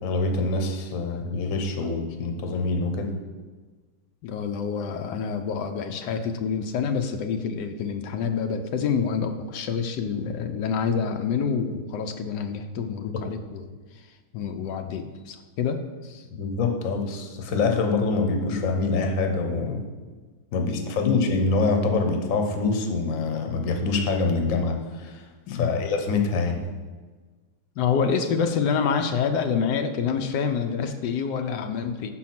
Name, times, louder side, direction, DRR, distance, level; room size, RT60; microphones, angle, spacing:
voice 1, 0.0-3.1 16.3-19.8 20.5-25.2 25.5-26.6, left 3 dB, 55° left, 4 dB, 1.2 m, -25 dB
voice 2, 4.2-14.0 14.3-16.2 20.7-20.8 25.5-25.8 27.8-32.1, left 6 dB, 85° left, 6 dB, 1.2 m, -27 dB
6.5 x 4.2 x 5.8 m, 1.4 s
omnidirectional pair, 1.8 m